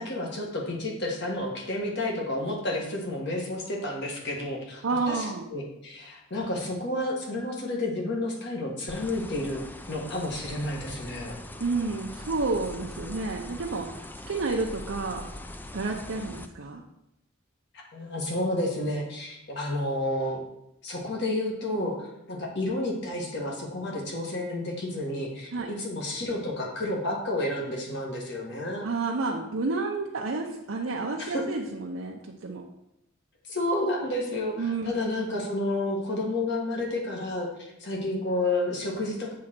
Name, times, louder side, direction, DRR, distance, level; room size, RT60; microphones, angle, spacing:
voice 1, 0.0-11.4 17.9-20.4 20.8-28.9 31.2-31.4 33.5-39.3, left 1 dB, 55° left, -1 dB, 1.6 m, -31 dB
voice 2, 4.8-5.5 11.6-15.3 15.7-16.8 25.5-25.7 28.8-32.6 34.6-34.9, right 3 dB, 80° right, -1 dB, 0.7 m, -30 dB
sound 1, 8.9-16.5, left 1 dB, 10° left, 0.3 m, -42 dB
7.4 x 3.8 x 5.9 m, 0.86 s
head